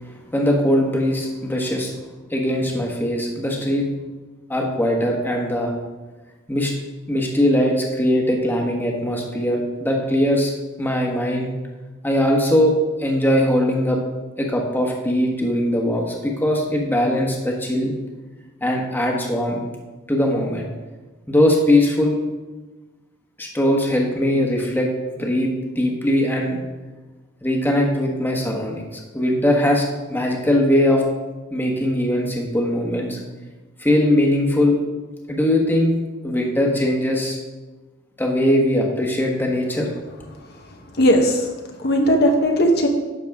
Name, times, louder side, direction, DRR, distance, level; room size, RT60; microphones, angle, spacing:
voice 1, 0.3-1.9 2.3-3.9 4.5-5.7 6.5-6.7 7.1-10.5 10.8-11.5 12.0-12.7 13.0-14.0 14.4-17.9 18.6-19.6 20.1-20.7 21.3-22.2 23.4-24.9 25.1-25.5 25.8-26.6 27.4-31.0 31.5-33.2 33.8-34.8 35.3-36.0 36.2-37.4 38.2-39.9, left 1 dB, 10° left, 0 dB, 1.2 m, -20 dB
voice 2, 40.5-41.5 41.8-42.9, equal, 55° left, 2 dB, 0.9 m, -18 dB
10.5 x 6.7 x 3.5 m, 1.2 s
head